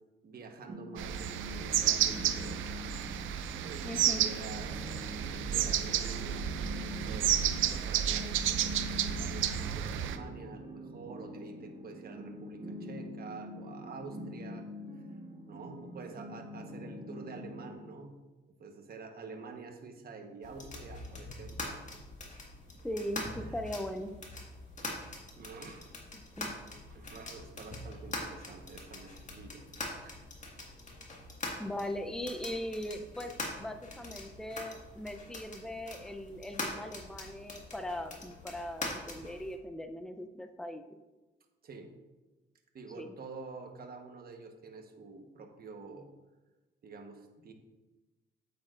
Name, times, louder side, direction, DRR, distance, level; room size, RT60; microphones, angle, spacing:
voice 1, 0.2-2.7 3.6-4.9 5.3-14.7 15.0-15.1 15.5-18.2 18.6-22.0 23.4-23.6 25.4-25.9 26.9-29.7 30.0-30.2 41.6-41.9 42.7-46.1 46.8-47.5, right 4 dB, 50° right, 4 dB, 1.2 m, -48 dB
sound 1, 0.7-17.7, left 1 dB, 30° right, 1.3 m, -44 dB
sound 2, 1.0-10.2, right 10 dB, 80° right, 0.6 m, -31 dB
voice 2, 3.8-4.2 22.8-24.1 26.1-26.5 31.6-40.9 43.0-43.1, left 1 dB, 5° left, 7 dB, 0.6 m, -39 dB
sound 3, 20.4-39.6, left 2 dB, 40° left, 1.8 m, -43 dB
8.7 x 8.4 x 2.5 m, 1.2 s
cardioid pair, 90°, 20 cm